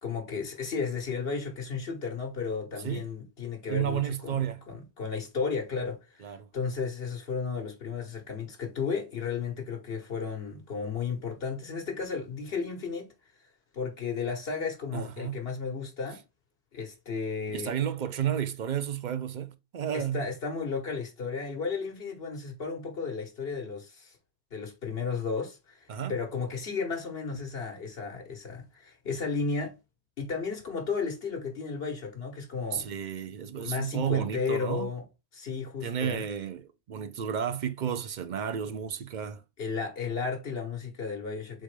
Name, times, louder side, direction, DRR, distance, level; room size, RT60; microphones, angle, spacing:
voice 1, 0.0-13.1 13.7-16.2 16.7-17.7 19.9-24.2 24.5-29.7 30.2-32.9 33.6-35.0 35.3-36.2 39.6-41.6, left 5 dB, 65° left, 1.3 m, -34 dB
voice 2, 3.7-4.6 6.2-6.5 14.9-15.4 17.5-20.2 25.9-26.1 32.7-34.9 35.8-39.4, right 9 dB, 55° right, 0.6 m, -32 dB
4.1 x 3.7 x 3.2 m
omnidirectional pair, 1.1 m